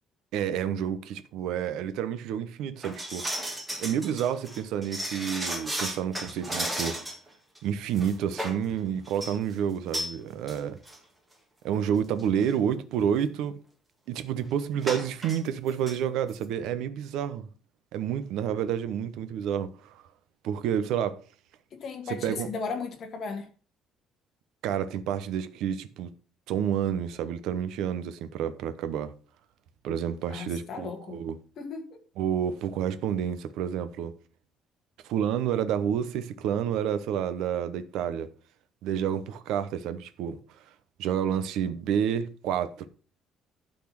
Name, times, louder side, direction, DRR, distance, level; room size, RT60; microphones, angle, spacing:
voice 1, 0.3-3.4 3.8-7.0 7.6-10.8 11.6-13.6 14.1-17.5 17.9-20.0 20.4-21.2 22.1-22.5 24.6-26.1 26.5-29.1 29.8-31.4 32.2-34.1 35.0-38.3 38.8-40.4 41.0-42.9, right 9 dB, 75° right, 0.9 m, -29 dB
sound 1, 2.8-7.3 7.6-7.7 8.0-8.6 9.1-9.4 9.9-10.1 10.5-10.6 10.9-11.0 11.8-11.9 12.2-12.4 14.8-15.4 15.7-16.0 16.3-16.4, right 1 dB, 10° right, 1.8 m, -34 dB
voice 2, 21.7-23.5 30.3-31.2 31.6-32.0, left 4 dB, 40° left, 1.9 m, -36 dB
12.0 x 4.3 x 5.9 m
cardioid pair, 170°, 0 cm